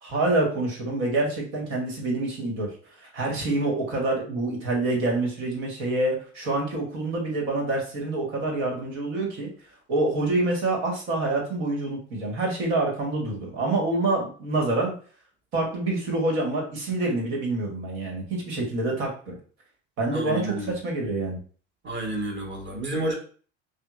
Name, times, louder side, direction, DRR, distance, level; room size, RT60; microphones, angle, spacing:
voice 1, 0.0-2.7 3.0-9.5 9.9-14.9 15.5-19.4 20.0-21.4, right 2 dB, 70° right, 0 dB, 1.6 m, -26 dB
voice 2, 20.1-20.7 21.8-23.1, right 1 dB, 30° right, 0 dB, 1.4 m, -30 dB
5.7 x 2.3 x 2.5 m, 0.41 s
hypercardioid pair, 80°, 36 cm